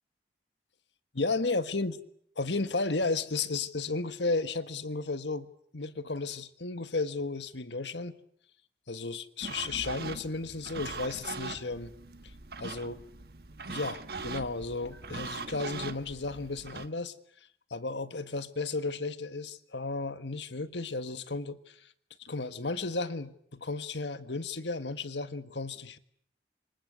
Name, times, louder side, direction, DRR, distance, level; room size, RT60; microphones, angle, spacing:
voice 1, 1.1-2.0 2.4-8.2 8.9-11.9 12.6-13.0 13.7-17.1 17.7-21.9 22.2-26.0, left 3 dB, 85° left, 1.6 m, -34 dB
sound 1, 9.4-16.9, right 4 dB, 60° right, 1.4 m, -41 dB
27.5 x 25.0 x 8.2 m
head